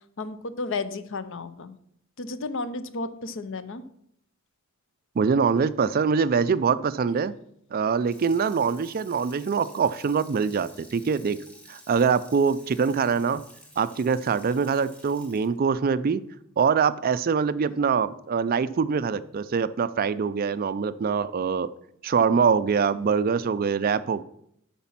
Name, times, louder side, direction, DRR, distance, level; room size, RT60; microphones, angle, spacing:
voice 1, 0.2-1.8 2.2-3.8 22.3-22.4, left 3 dB, 60° left, 13 dB, 0.6 m, -33 dB
voice 2, 5.2-7.3 7.7-11.4 11.7-13.4 13.8-16.2 16.6-21.7 22.0-24.2, right 6 dB, 40° right, 15 dB, 0.4 m, -24 dB
Water tap faucet / Sink (filling or washing), 7.9-17.1 17.5-17.6, equal, 5° left, 1.5 m, -52 dB
8.4 x 6.0 x 5.7 m, 0.72 s
head